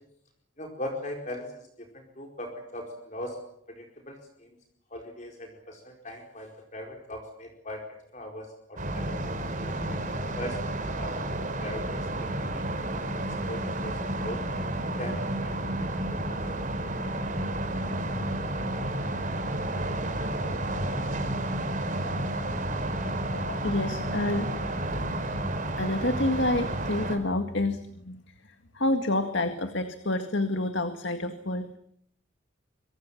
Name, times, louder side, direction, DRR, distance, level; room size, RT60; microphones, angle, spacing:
voice 1, 0.6-1.5 1.9-3.4 3.8-4.5 4.9-9.2 9.6-10.0 10.4-12.6 12.9-13.0 13.5-14.4 15.0-16.4, left 1 dB, 35° left, 2 dB, 4.8 m, -40 dB
sound 1, 8.8-27.2, right 1 dB, 40° right, 4.6 m, -31 dB
voice 2, 23.3-24.6 25.8-28.2 28.7-31.7, left 2 dB, 65° left, 7 dB, 2.0 m, -28 dB
27.5 x 24.0 x 7.3 m, 0.70 s
head